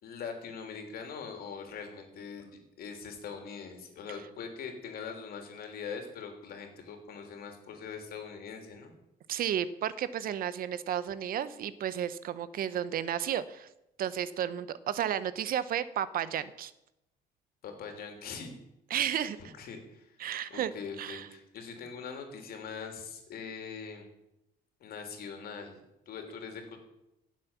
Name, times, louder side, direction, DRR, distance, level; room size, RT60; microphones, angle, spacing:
voice 1, 0.0-8.9 17.6-18.5 19.1-20.2 20.5-24.1 24.8-26.8, left 6 dB, 65° left, 4 dB, 3.3 m, -42 dB
voice 2, 9.3-13.7 14.0-16.7 18.9-19.4 20.2-20.7 21.0-21.3, right 10 dB, 60° right, 15 dB, 0.9 m, -32 dB
16.0 x 7.5 x 7.3 m, 0.87 s
cardioid pair, 110°, 17 cm